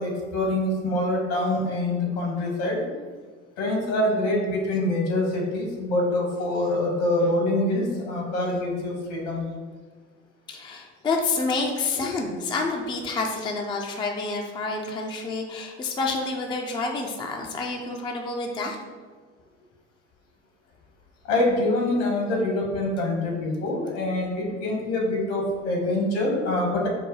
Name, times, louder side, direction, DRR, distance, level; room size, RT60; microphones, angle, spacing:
voice 1, 0.0-2.9 3.6-9.4 12.0-12.1 21.2-26.9, left 1 dB, 65° left, -1 dB, 1.4 m, -25 dB
voice 2, 10.5-18.8, left 3 dB, 15° left, 2 dB, 0.4 m, -28 dB
4.6 x 2.2 x 4.6 m, 1.5 s
hypercardioid pair, 70°, 36 cm